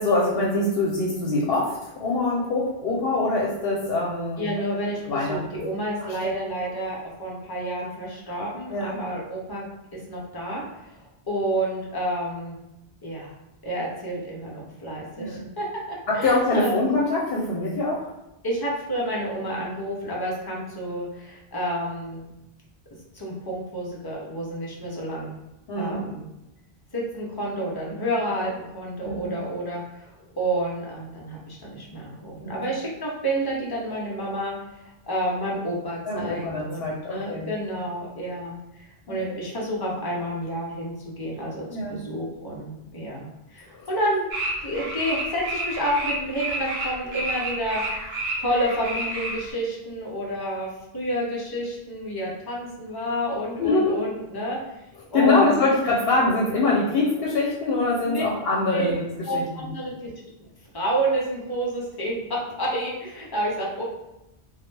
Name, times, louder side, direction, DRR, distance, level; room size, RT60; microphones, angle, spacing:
voice 1, 0.0-4.5 5.1-5.4 6.0-6.3 8.7-9.0 15.2-15.4 16.1-18.1 25.7-26.0 29.0-29.3 32.4-32.6 36.1-37.5 39.1-39.4 41.7-42.0 43.7-43.9 53.6-54.0 55.1-59.4, left 2 dB, 70° left, -4 dB, 0.7 m, -24 dB
voice 2, 4.4-12.6 13.0-13.3 13.6-16.8 18.4-22.3 23.1-25.3 25.8-26.3 26.9-47.8 48.4-54.6 55.1-55.7 58.1-58.2 58.7-58.9 59.3-60.1 60.7-63.8, right 1 dB, 30° left, -4 dB, 0.4 m, -29 dB
sound 1, 44.3-49.5, right 1 dB, 75° right, 1.0 m, -30 dB
2.1 x 2.1 x 3.1 m, 0.91 s
omnidirectional pair, 1.1 m